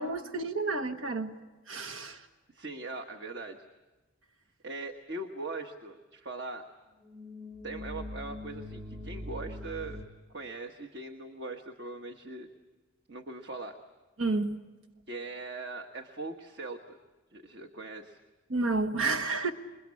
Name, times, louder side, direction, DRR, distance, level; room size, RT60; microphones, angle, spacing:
voice 1, 0.0-1.3 1.7-2.2 14.2-14.5 18.5-19.5, right 3 dB, 80° right, 6 dB, 1.3 m, -30 dB
voice 2, 2.5-3.7 4.6-6.7 7.6-10.0 10.3-12.5 13.1-13.8 15.1-17.0 17.3-18.2, right 2 dB, 55° right, 5 dB, 1.4 m, -40 dB
sound 1, 7.0-10.0, left 1 dB, 30° right, 2.5 m, -42 dB
28.0 x 22.0 x 8.5 m, 1.2 s
head